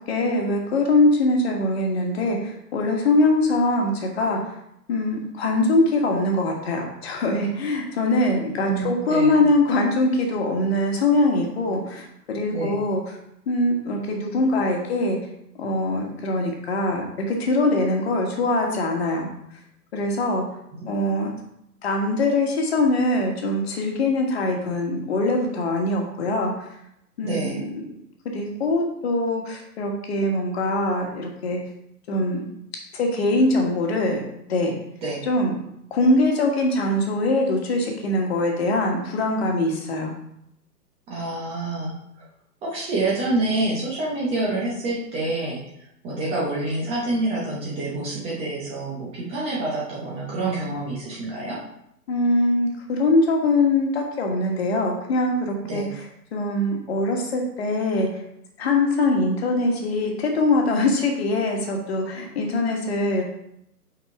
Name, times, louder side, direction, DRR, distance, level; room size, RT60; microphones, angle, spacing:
voice 1, 0.1-4.4 4.9-13.2 13.5-15.2 15.6-19.3 19.9-20.4 20.9-21.3 21.8-26.5 27.2-27.8 28.3-31.6 32.1-32.5 32.9-34.7 35.2-40.1 52.1-58.1 58.6-63.2, left 2 dB, 40° left, 1 dB, 1.6 m, -22 dB
voice 2, 8.7-9.4 12.5-12.8 20.8-20.9 27.2-27.6 35.0-35.2 41.1-41.9 42.6-45.6 46.0-51.6 55.6-55.9, right 2 dB, 10° right, -5 dB, 0.9 m, -27 dB
5.5 x 5.2 x 4.6 m, 0.78 s
figure-of-eight pair, 125°, 48 cm